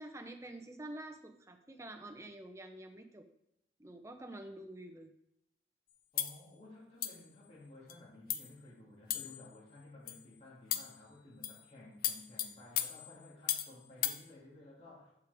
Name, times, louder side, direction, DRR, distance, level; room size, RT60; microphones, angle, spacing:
voice 1, 0.0-3.3 3.8-5.1, right 1 dB, 15° right, 6 dB, 0.6 m, -48 dB
voice 2, 6.1-15.1, left 2 dB, 35° left, -6 dB, 2.3 m, -55 dB
sound 1, 6.2-6.4 7.0-7.3 7.9-8.0 8.3-8.5 9.1-9.5 10.1-10.2 10.7-11.0 11.4-11.6 12.0-13.7 14.0-14.2, left 11 dB, 50° left, 0.5 m, -36 dB
12.0 x 4.5 x 3.5 m, 0.82 s
head